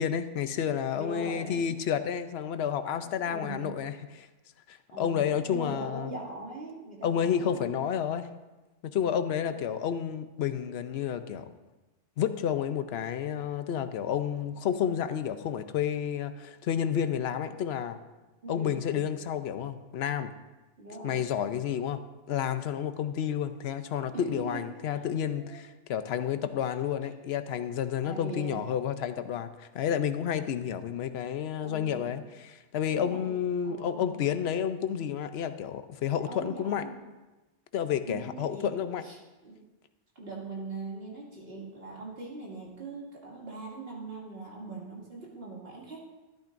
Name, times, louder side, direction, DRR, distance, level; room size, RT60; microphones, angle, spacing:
voice 1, 0.0-4.3 4.7-6.1 7.0-8.3 8.8-11.5 12.2-18.0 18.5-20.3 21.0-22.0 22.3-36.8 37.7-39.0, left 8 dB, 70° left, 10 dB, 0.9 m, -30 dB
voice 2, 0.9-1.7 3.0-3.7 4.9-7.9 18.4-19.0 20.8-21.2 24.1-24.6 25.3-25.6 28.0-28.7 31.6-32.1 32.9-33.4 33.6-34.3 36.2-37.0 38.0-38.7 39.0-39.2 39.4-39.5 40.2-46.0, right 3 dB, 60° right, -4 dB, 2.7 m, -41 dB
13.5 x 11.5 x 2.6 m, 1.1 s
omnidirectional pair, 1.2 m